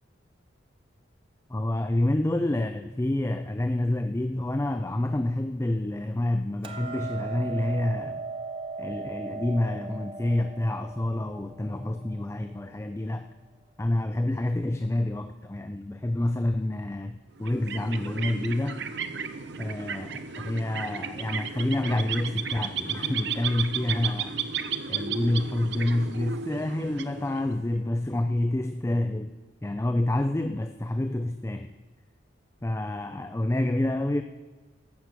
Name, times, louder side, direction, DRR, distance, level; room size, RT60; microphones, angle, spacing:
voice 1, 1.5-8.2 8.8-13.3 13.8-18.8 19.6-24.3 24.9-29.4 29.6-31.7 32.6-34.2, left 1 dB, 15° left, 8 dB, 0.4 m, -28 dB
Hammer, 6.6-12.9, right 4 dB, 25° right, 0.8 m, -38 dB
sound 1, 17.4-27.8, right 7 dB, 55° right, 0.8 m, -34 dB
14.5 x 6.0 x 7.8 m, 1.4 s
head